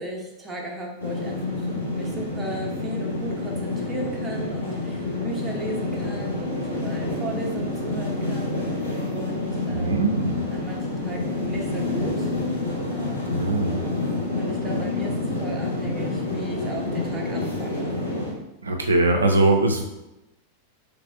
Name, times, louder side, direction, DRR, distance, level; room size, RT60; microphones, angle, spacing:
voice 1, 0.0-8.6 9.1-12.3 12.9-13.5 14.4-15.2 15.4-18.0, right 1 dB, 10° right, -2 dB, 0.8 m, -36 dB
sound 1, 1.0-18.3, left 2 dB, 80° left, 0.8 m, -28 dB
voice 2, 9.7-10.4 13.3-13.8 18.6-19.8, right 2 dB, 75° right, 3 dB, 0.3 m, -21 dB
3.1 x 2.5 x 3.4 m, 0.95 s
figure-of-eight pair, 90°, 0 cm